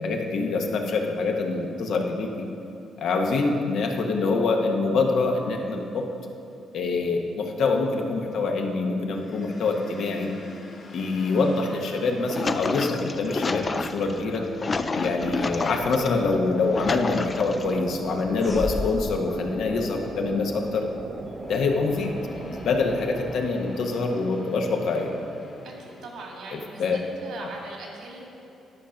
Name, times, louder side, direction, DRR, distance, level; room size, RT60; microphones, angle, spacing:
voice 1, 0.0-2.5 3.0-6.1 6.7-10.3 10.9-14.4 14.9-20.8 21.5-22.1 22.5-25.1 26.5-27.0 27.4-27.5, left 3 dB, 70° left, 2 dB, 1.0 m, -25 dB
sound 1, 9.1-26.1, left 2 dB, 50° left, 1.7 m, -46 dB
sound 2, 12.1-16.1 16.5-17.8 18.4-19.1, left 3 dB, 30° left, 0.4 m, -30 dB
sound 3, 15.0-23.4, right 2 dB, 30° right, 0.6 m, -38 dB
voice 2, 25.6-26.8 27.2-28.2, right 3 dB, 80° right, -1 dB, 2.1 m, -40 dB
11.0 x 5.1 x 5.8 m, 2.7 s
cardioid pair, 90°, 0 cm